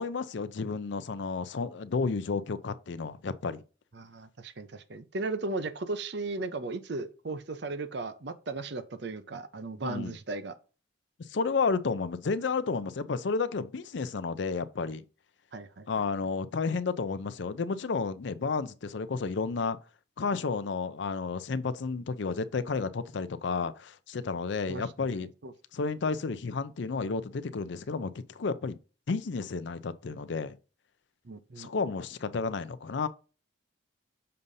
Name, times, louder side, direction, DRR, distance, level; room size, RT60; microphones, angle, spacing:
voice 1, 0.0-3.6 9.8-10.2 11.2-15.0 15.9-19.8 20.2-25.3 25.7-28.8 29.1-30.6 31.6-33.1, left 4 dB, 65° left, 0.5 m, -31 dB
voice 2, 3.9-10.6 15.5-15.9 24.7-25.2 25.4-25.5 31.2-31.7, right 3 dB, 60° right, 0.7 m, -36 dB
6.6 x 5.5 x 2.7 m
head